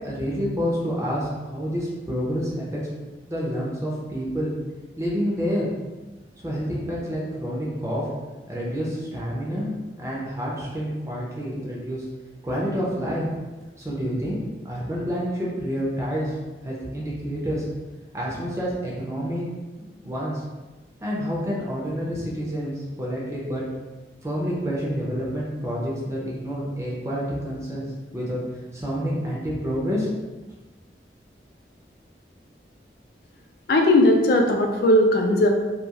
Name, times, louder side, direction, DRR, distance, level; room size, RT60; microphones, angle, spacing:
voice 1, 0.0-2.8 3.3-4.5 5.0-5.7 6.4-8.1 8.5-12.0 12.4-13.2 13.8-14.4 14.6-16.3 16.6-17.6 18.1-19.5 20.0-20.4 21.0-23.6 24.2-27.9 28.1-28.4 28.7-30.1, equal, 15° right, -5 dB, 0.5 m, -28 dB
voice 2, 33.7-35.5, left 1 dB, 55° left, 3 dB, 0.3 m, -18 dB
2.8 x 2.3 x 2.3 m, 1.2 s
head